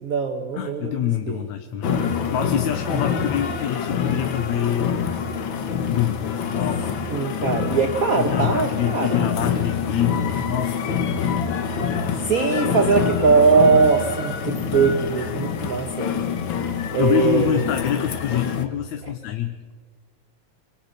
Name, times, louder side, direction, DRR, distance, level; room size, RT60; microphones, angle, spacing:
voice 1, 0.0-1.4 2.9-3.0 7.1-9.1 12.2-16.2 16.9-17.6 19.0-19.1, right 5 dB, 50° right, 6 dB, 1.1 m, -21 dB
voice 2, 0.5-2.0 2.3-5.0 5.9-6.9 8.2-10.8 17.0-19.6, left 11 dB, 75° left, 6 dB, 2.4 m, -26 dB
sound 1, 1.8-18.7, left 6 dB, 50° left, 1.7 m, -26 dB
25.5 x 25.0 x 6.7 m, 1.5 s
omnidirectional pair, 3.4 m